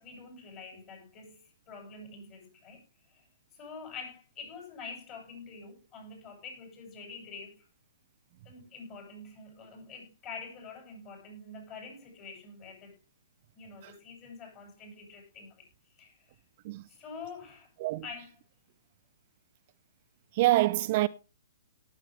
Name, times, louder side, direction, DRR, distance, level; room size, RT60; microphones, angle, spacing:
voice 1, 0.0-2.8 3.1-3.2 3.5-7.6 8.4-13.0 13.5-15.7 16.0-16.3 16.9-17.7 18.0-18.3, left 4 dB, 30° left, 7.8 m, -46 dB
voice 2, 20.3-21.1, right 17 dB, 45° right, 0.5 m, -26 dB
18.0 x 8.0 x 3.5 m
figure-of-eight pair, 125°, 0 cm